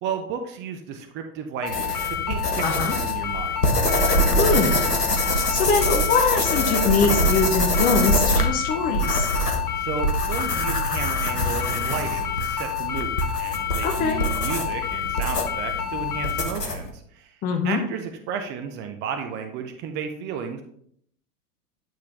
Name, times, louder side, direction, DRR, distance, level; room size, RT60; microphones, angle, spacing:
voice 1, 0.0-3.6 9.8-20.6, right 7 dB, 25° right, 6 dB, 0.6 m, -33 dB
sound 1, 1.6-16.4, left 10 dB, 65° left, 1.3 m, -30 dB
sound 2, 1.7-16.9, equal, 85° left, 1.1 m, -25 dB
voice 2, 2.6-2.9 4.4-4.8 5.5-9.3 13.8-14.2 17.4-17.8, left 4 dB, 20° left, 3 dB, 0.5 m, -23 dB
9.0 x 4.6 x 3.5 m, 0.67 s
figure-of-eight pair, 95°, 46 cm